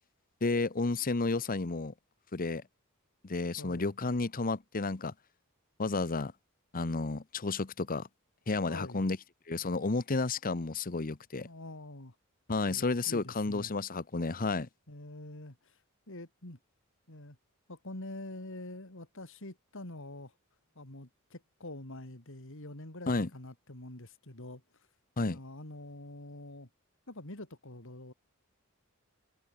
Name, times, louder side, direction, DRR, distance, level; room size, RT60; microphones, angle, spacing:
voice 1, 0.4-1.9 2.3-2.6 3.2-5.1 5.8-6.3 6.7-8.1 8.5-9.2 9.5-11.5 12.5-14.7 23.1-23.3 25.2-25.4, left 3 dB, 40° left, 0.9 m, -31 dB
voice 2, 3.6-3.9 8.7-9.0 11.4-12.2 12.7-13.8 14.9-15.8 16.1-16.6 17.1-17.4 17.7-20.4 20.8-24.9 25.2-26.7 27.1-28.1, left 1 dB, 65° left, 3.5 m, -46 dB
head